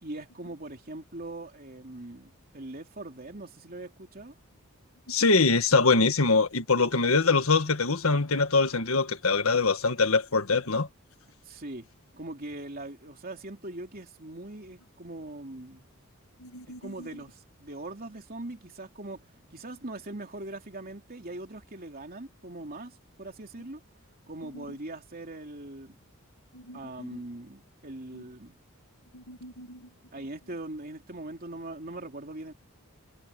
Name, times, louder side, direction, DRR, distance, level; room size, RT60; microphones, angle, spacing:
voice 1, 0.0-4.3 11.4-11.9 12.1-15.9 16.8-19.3 19.5-23.8 24.3-26.0 26.7-28.6 30.1-32.5, right 2 dB, 45° right, 3.2 m, -41 dB
voice 2, 5.1-10.9 16.4-17.1 24.5-24.6 26.5-27.2 28.1-28.2 29.1-29.8, left 4 dB, 75° left, 1.6 m, -24 dB
head